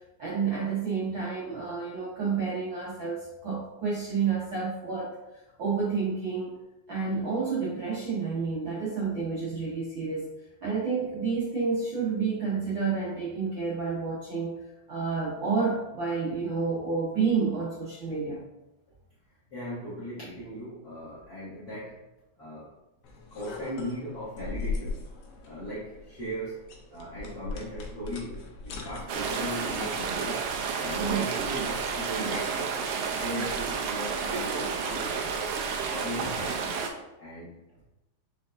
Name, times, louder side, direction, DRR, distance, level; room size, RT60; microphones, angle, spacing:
voice 1, 0.2-5.1 5.6-6.6 6.9-10.3 10.6-14.5 14.9-18.4 31.0-31.2, right 5 dB, 65° right, -7 dB, 1.2 m, -29 dB
voice 2, 19.5-22.0 22.4-22.7 23.3-25.0 25.5-30.5 30.8-32.8 33.1-35.5 35.9-36.7 37.2-37.5, equal, 55° left, -11 dB, 1.0 m, -38 dB
sound 1, 23.0-30.1, left 4 dB, 75° left, 1.3 m, -39 dB
sound 2, 29.1-36.9, right 5 dB, 90° right, 1.3 m, -31 dB
5.8 x 3.4 x 2.5 m, 0.95 s
omnidirectional pair, 3.4 m